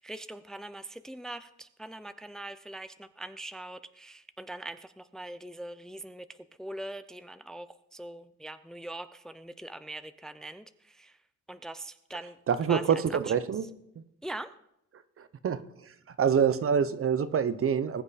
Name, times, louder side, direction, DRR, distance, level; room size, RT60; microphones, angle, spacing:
voice 1, 0.0-11.2 11.5-12.4 12.7-13.4 14.2-14.5, right 1 dB, ahead, 11 dB, 0.6 m, -42 dB
voice 2, 12.5-13.6 15.4-15.6 16.2-18.0, right 7 dB, 45° right, 13 dB, 0.9 m, -25 dB
20.0 x 7.9 x 4.2 m, 0.80 s
cardioid pair, 90°, 30 cm